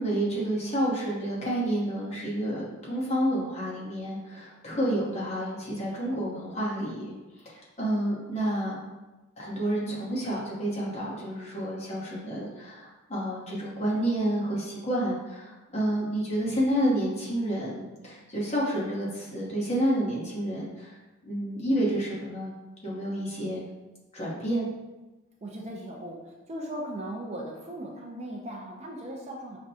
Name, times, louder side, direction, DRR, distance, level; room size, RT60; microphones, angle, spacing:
voice 1, 0.0-7.1 7.4-8.8 9.4-21.0 21.2-22.5 22.8-23.6 24.1-24.7, right 1 dB, 30° left, -6 dB, 1.0 m, -29 dB
voice 2, 4.7-5.2 25.4-29.6, right 1 dB, 30° right, -1 dB, 0.4 m, -38 dB
5.9 x 2.2 x 2.7 m, 1.1 s
head